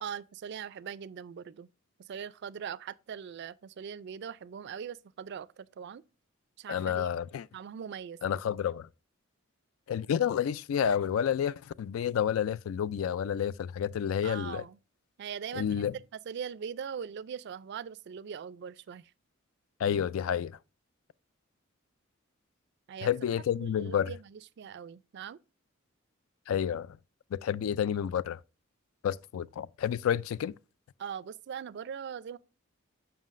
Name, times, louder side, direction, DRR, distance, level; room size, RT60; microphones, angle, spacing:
voice 1, 0.0-1.7 2.0-6.0 6.6-7.1 7.5-8.4 14.2-14.8 15.2-15.7 16.3-19.1 22.9-23.1 23.6-25.4 31.0-32.4, right 7 dB, 55° right, 0.3 m, -41 dB
voice 2, 6.7-7.4 8.2-8.9 9.9-14.6 15.5-15.9 19.8-20.6 23.0-24.1 26.5-27.0 27.3-28.4 29.0-30.5, left 8 dB, 80° left, 0.3 m, -30 dB
7.3 x 5.7 x 2.5 m
head